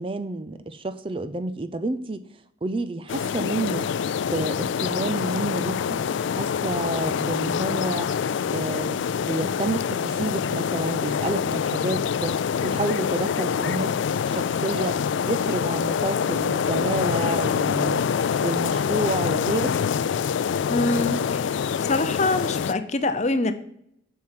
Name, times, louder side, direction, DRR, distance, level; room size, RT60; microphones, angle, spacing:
voice 1, 0.0-2.2 2.6-3.9 4.3-6.0 6.3-8.1 8.5-18.1 18.4-19.8, right 2 dB, 30° right, 11 dB, 0.5 m, -29 dB
sound 1, 3.1-22.7, left 7 dB, 70° left, 0.3 m, -25 dB
voice 2, 20.7-21.5 21.8-23.5, left 2 dB, 35° left, 10 dB, 0.7 m, -24 dB
7.6 x 7.5 x 5.7 m, 0.73 s
head